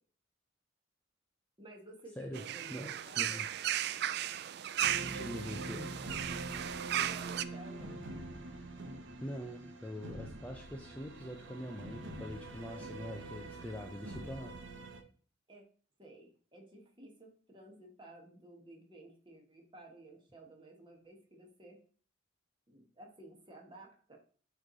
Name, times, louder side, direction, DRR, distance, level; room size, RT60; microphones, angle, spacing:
voice 1, 1.6-3.5 6.9-8.0 15.5-15.6 16.0-21.8 22.7-24.2, right 2 dB, 25° right, 1 dB, 1.4 m, -54 dB
voice 2, 2.2-3.5 5.1-6.0 9.2-14.5, equal, 5° left, 1 dB, 0.5 m, -44 dB
sound 1, 2.3-7.4, right 11 dB, 55° right, 0.3 m, -36 dB
sound 2, 4.8-15.0, right 2 dB, 70° right, 1.0 m, -45 dB
8.6 x 3.2 x 3.9 m, 0.43 s
head